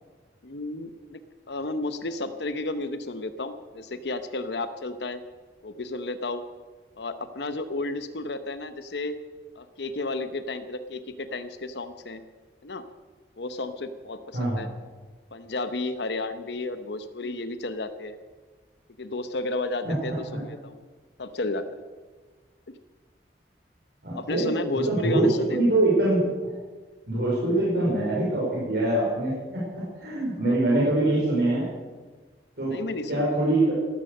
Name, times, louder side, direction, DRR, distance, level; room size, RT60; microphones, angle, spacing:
voice 1, 0.4-1.2 1.5-5.2 5.6-6.4 7.0-9.2 9.6-12.2 12.6-12.8 13.4-14.7 15.3-18.2 19.0-20.8 21.2-21.8 22.7-22.8 24.1-25.6 30.4-31.2 32.7-33.3, left 2 dB, 75° left, 10 dB, 0.9 m, -32 dB
voice 2, 14.3-14.6 19.8-20.4 24.0-26.3 27.1-31.7 32.6-32.8 33.1-33.8, right 2 dB, 65° right, -6 dB, 5.0 m, -24 dB
13.5 x 13.0 x 6.5 m, 1.4 s
head